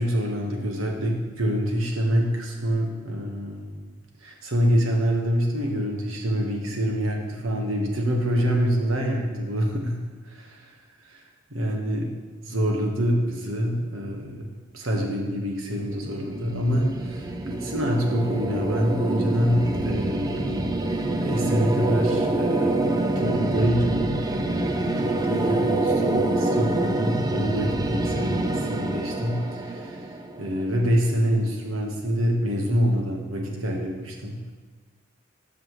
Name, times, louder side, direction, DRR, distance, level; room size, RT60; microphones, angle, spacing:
voice 1, 0.0-3.8 4.2-10.7 11.1-11.2 11.5-12.1 12.4-14.5 14.7-22.8 23.1-30.1 30.4-34.5, equal, 80° right, 0 dB, 1.4 m, -26 dB
sound 1, 15.7-30.8, right 2 dB, 20° right, 0.4 m, -26 dB
13.0 x 5.9 x 3.2 m, 1.4 s
head